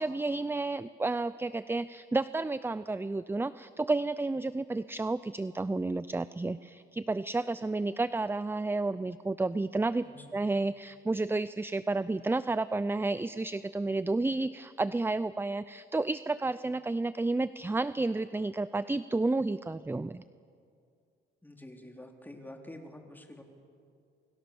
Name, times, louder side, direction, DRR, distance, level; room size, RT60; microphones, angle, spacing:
voice 1, 0.0-20.2, right 2 dB, 10° right, 15 dB, 0.5 m, -31 dB
voice 2, 10.1-10.4 21.4-23.4, left 1 dB, 10° left, 3 dB, 3.5 m, -48 dB
29.0 x 23.5 x 7.1 m, 2.3 s
cardioid pair, 90°, 20 cm